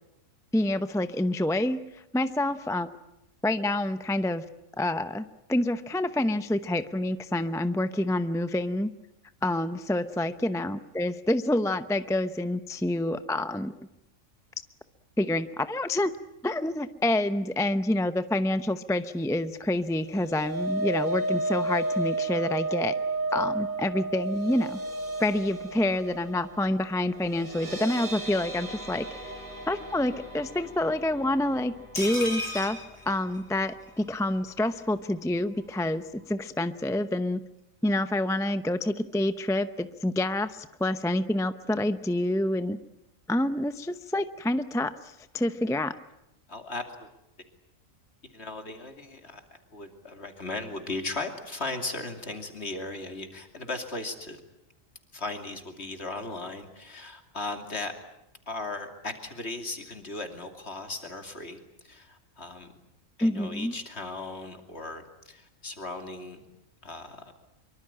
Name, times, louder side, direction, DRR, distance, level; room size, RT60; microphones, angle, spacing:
voice 1, 0.5-1.8 2.1-2.9 3.4-4.4 4.8-8.9 9.4-13.9 15.2-16.1 16.4-22.9 23.3-24.8 25.2-29.0 29.7-32.8 33.1-36.0 36.3-37.4 37.8-42.8 43.3-44.9 45.3-45.9 63.2-63.7, left 1 dB, 5° left, 11 dB, 0.6 m, -27 dB
sound 1, 19.9-34.1 34.4-34.7 35.0-35.1, right 2 dB, 40° right, 4.1 m, -34 dB
sound 2, 32.0-33.9 34.2-34.3 34.6-34.7, left 1 dB, 25° left, 5.6 m, -35 dB
voice 2, 46.5-47.1 48.2-49.4 49.7-54.4 55.1-58.0 58.5-62.7 63.2-66.4 66.8-67.3, left 2 dB, 55° left, 5 dB, 3.0 m, -37 dB
24.5 x 24.0 x 8.8 m, 0.87 s
omnidirectional pair, 1.4 m